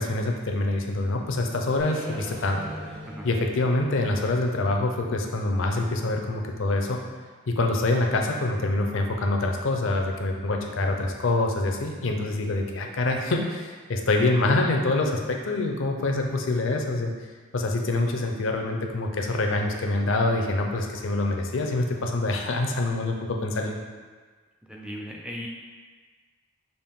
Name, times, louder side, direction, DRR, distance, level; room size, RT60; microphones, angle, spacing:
voice 1, 0.0-2.7 3.2-7.0 7.5-17.1 17.5-23.8, left 2 dB, 60° left, 2 dB, 0.5 m, -25 dB
sound 1, 1.8-5.8, equal, 80° right, 1.5 m, -42 dB
voice 2, 24.7-25.5, equal, 5° right, -1 dB, 0.4 m, -37 dB
5.2 x 2.5 x 3.6 m, 1.4 s
head